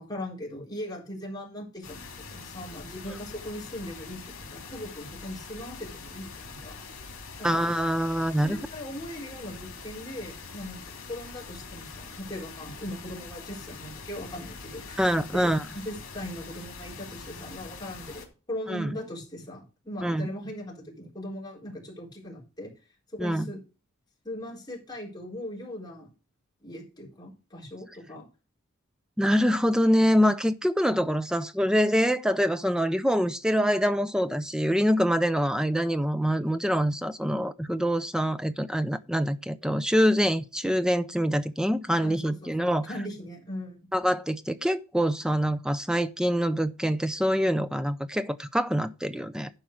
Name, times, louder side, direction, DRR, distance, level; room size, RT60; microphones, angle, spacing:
voice 1, 0.0-7.0 7.4-7.6 8.4-10.8 11.1-22.7 23.1-23.6 24.2-26.1 26.6-28.3 42.0-43.9, left 1 dB, 20° left, 4.0 m, -39 dB
sound 1, 1.8-18.3, left 4 dB, 70° left, 2.7 m, -43 dB
voice 2, 7.4-8.6 15.0-15.6 18.7-18.9 20.0-20.3 23.2-23.5 29.2-42.9 43.9-49.5, equal, 5° right, 0.5 m, -25 dB
11.5 x 4.6 x 6.3 m
head